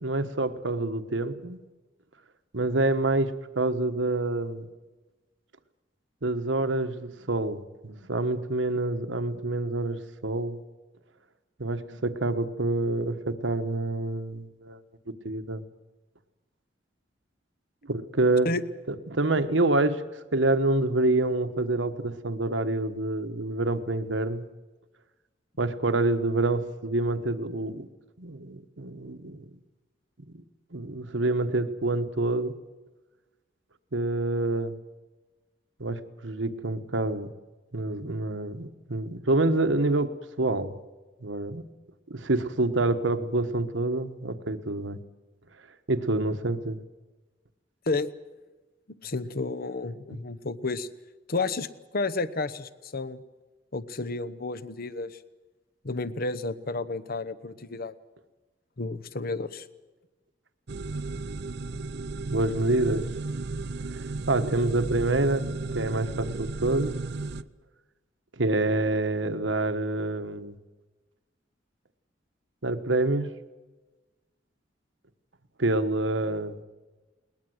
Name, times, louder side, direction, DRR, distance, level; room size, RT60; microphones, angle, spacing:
voice 1, 0.0-1.6 2.5-4.7 6.2-10.6 11.6-14.8 15.2-15.6 17.8-18.5 19.1-20.0 20.3-24.5 25.6-27.9 28.2-29.4 30.3-30.4 30.7-32.5 33.9-34.7 35.8-37.3 37.7-40.7 41.2-41.6 42.1-45.0 45.9-46.8 62.3-63.1 63.9-65.4 65.7-67.0 68.4-70.6 72.6-73.3 75.6-76.6, right 2 dB, 85° right, 9 dB, 1.3 m, -27 dB
voice 2, 48.9-50.9 51.3-51.7 51.9-53.2 53.7-55.2 55.8-57.9 58.8-59.7, left 3 dB, 55° left, 16 dB, 0.9 m, -31 dB
sound 1, 60.7-67.4, right 3 dB, 60° right, 0.6 m, -34 dB
21.5 x 19.5 x 7.9 m, 1.2 s
head